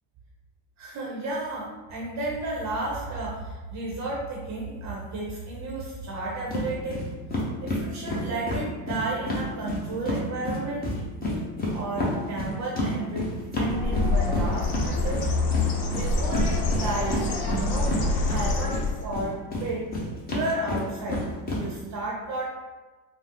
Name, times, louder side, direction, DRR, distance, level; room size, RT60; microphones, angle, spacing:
voice 1, 0.8-7.0 7.6-10.9 11.7-13.3 13.5-15.2 15.9-17.9 18.3-19.9 20.3-22.4, right 2 dB, 35° right, -3 dB, 0.6 m, -32 dB
sound 1, 6.5-6.7 6.9-7.0 7.3-10.2 10.5-18.8 19.1-21.6, left 1 dB, 20° left, 0.7 m, -29 dB
Bird, 13.6-19.2, left 2 dB, 85° left, 0.7 m, -26 dB
3.8 x 2.0 x 2.7 m, 1.2 s
supercardioid pair, 115°, 48 cm